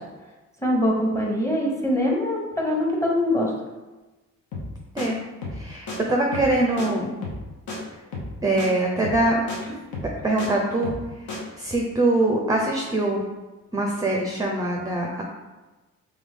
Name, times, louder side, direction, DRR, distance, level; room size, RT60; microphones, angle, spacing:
voice 1, 0.6-3.5, left 1 dB, 10° left, -2 dB, 1.0 m, -23 dB
sound 1, 4.5-4.7 5.0-5.1 5.4-5.6 5.9-6.0 6.3-6.5 6.8-6.9 7.2-7.4 7.7-7.8 8.1-8.3 8.6-8.7 9.0-9.2 9.5-9.6 9.9-10.5 10.8-11.0 11.3-11.4, left 2 dB, 75° left, 1.1 m, -32 dB
voice 2, 5.6-7.2 8.4-9.4 10.2-10.9 11.6-13.3 13.7-15.2, right 2 dB, 10° right, 0 dB, 0.5 m, -23 dB
3.5 x 3.3 x 3.6 m, 1.2 s
cardioid pair, 90°, 30 cm